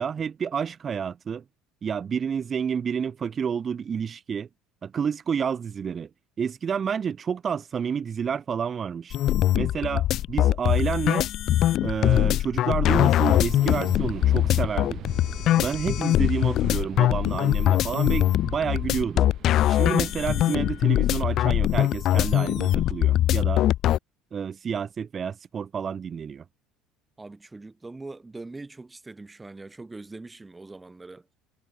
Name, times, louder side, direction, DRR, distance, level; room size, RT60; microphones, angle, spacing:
voice 1, 0.0-1.4 1.8-4.5 4.8-6.1 6.4-9.2 9.5-11.3 11.8-15.0 15.6-19.3 19.7-23.6 24.3-26.4, right 7 dB, 30° right, 1.1 m, -29 dB
sound 1, 9.1-24.0, left 13 dB, 55° left, 0.9 m, -22 dB
sound 2, 13.2-21.5, right 11 dB, 50° right, 3.0 m, -43 dB
voice 2, 27.2-31.3, right 3 dB, 15° right, 3.6 m, -42 dB
cardioid pair, 120°, 0 cm